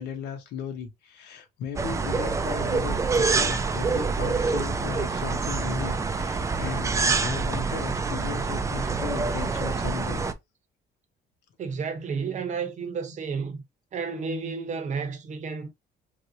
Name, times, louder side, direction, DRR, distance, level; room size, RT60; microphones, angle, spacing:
voice 1, 0.0-6.9 7.2-10.2, left 7 dB, 80° left, 1.0 m, -36 dB
sound 1, 1.8-10.3, right 4 dB, 20° right, 0.3 m, -26 dB
voice 2, 11.6-13.6 13.9-15.7, right 5 dB, 45° right, 0.8 m, -31 dB
3.2 x 2.6 x 2.7 m
cardioid pair, 110°, 17 cm